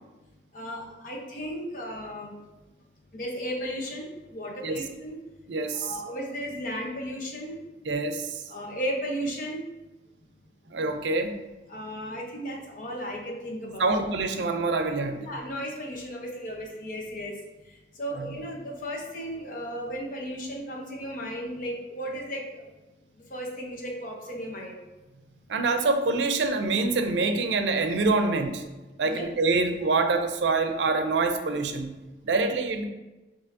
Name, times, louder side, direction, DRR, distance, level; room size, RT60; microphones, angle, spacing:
voice 1, 0.5-2.3 3.1-5.2 5.7-7.6 8.5-9.6 11.7-13.9 15.2-17.3 18.0-22.7 23.3-24.8 29.1-29.2, equal, 50° left, -1 dB, 0.9 m, -35 dB
voice 2, 5.5-6.0 7.8-8.4 10.7-11.4 13.8-15.3 18.1-18.4 25.5-28.6 29.0-31.9 32.2-32.8, right 3 dB, 85° right, 7 dB, 0.5 m, -26 dB
6.7 x 2.8 x 2.6 m, 1.1 s
head